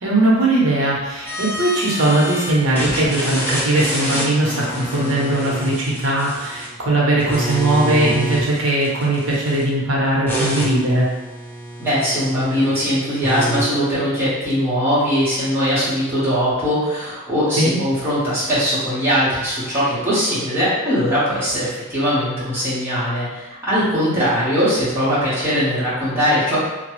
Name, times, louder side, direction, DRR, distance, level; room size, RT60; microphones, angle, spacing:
voice 1, 0.0-11.1 17.6-17.7, right 1 dB, 65° right, -4 dB, 0.8 m, -19 dB
sound 1, 1.3-2.5 2.8-6.8 7.2-9.6 10.3-12.7 13.2-13.6, equal, 10° left, 0.4 m, -27 dB
voice 2, 11.8-26.6, equal, 10° right, -12 dB, 1.2 m, -20 dB
2.9 x 2.2 x 3.1 m, 1.1 s
head